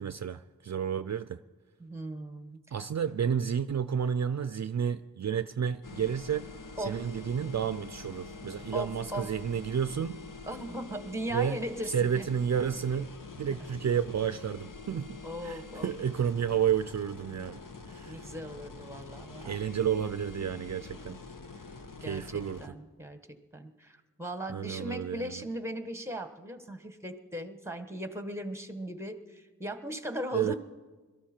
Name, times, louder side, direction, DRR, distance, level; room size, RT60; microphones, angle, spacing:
voice 1, 0.0-1.4 2.7-6.5 6.9-10.2 11.3-11.6 11.9-13.1 13.4-15.2 15.4-17.6 17.9-18.3 19.4-21.2 22.0-22.6 24.5-25.4 30.3-30.5, right 8 dB, 55° right, 12 dB, 0.5 m, -31 dB
voice 2, 1.8-2.6 6.8-7.0 8.7-9.3 10.5-12.2 15.2-15.9 18.1-19.6 22.0-23.2 23.5-30.6, equal, 10° right, 9 dB, 1.3 m, -38 dB
sound 1, 5.8-22.7, left 4 dB, 70° left, 1.1 m, -46 dB
22.0 x 13.5 x 4.4 m, 1.3 s
wide cardioid pair, 60°, 33 cm